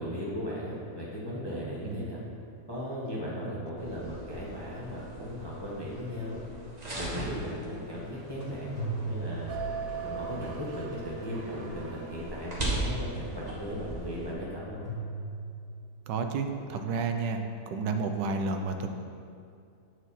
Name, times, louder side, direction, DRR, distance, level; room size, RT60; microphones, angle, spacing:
voice 1, 0.0-2.2 2.7-6.4 7.0-9.5 10.0-14.8, equal, 20° left, -6 dB, 0.8 m, -37 dB
sound 1, 3.0-4.2 8.7-10.3 14.8-16.0, right 2 dB, 55° left, 1.8 m, -38 dB
sound 2, 3.8-14.3, right 1 dB, 30° right, 1.0 m, -39 dB
sound 3, 9.5-13.8, right 5 dB, 65° right, 1.1 m, -40 dB
voice 2, 16.1-18.9, right 4 dB, 85° right, 5 dB, 1.2 m, -31 dB
7.7 x 4.6 x 4.1 m, 2.4 s
omnidirectional pair, 1.8 m